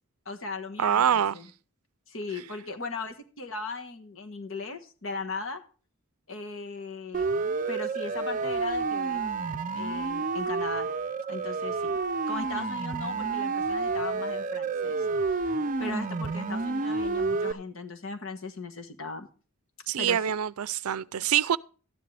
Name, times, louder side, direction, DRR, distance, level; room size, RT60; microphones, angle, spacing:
voice 1, 0.2-1.5 2.1-5.6 6.3-7.3 7.7-9.2 9.7-10.9 11.3-11.9 12.3-15.5 15.8-19.3 20.0-20.2, left 3 dB, 65° left, 1.4 m, -38 dB
voice 2, 0.8-1.4 19.9-21.6, right 9 dB, 85° right, 0.4 m, -25 dB
Siren, 7.1-17.5, right 4 dB, 35° right, 0.5 m, -29 dB
13.0 x 10.5 x 3.3 m
head